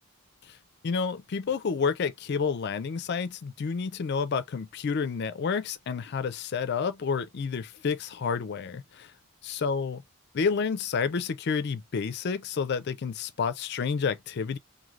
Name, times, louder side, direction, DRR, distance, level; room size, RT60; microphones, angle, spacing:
voice 1, 0.8-9.1 9.4-10.0 10.3-14.6, left 5 dB, 50° left, 0.4 m, -29 dB
3.1 x 2.6 x 2.4 m
head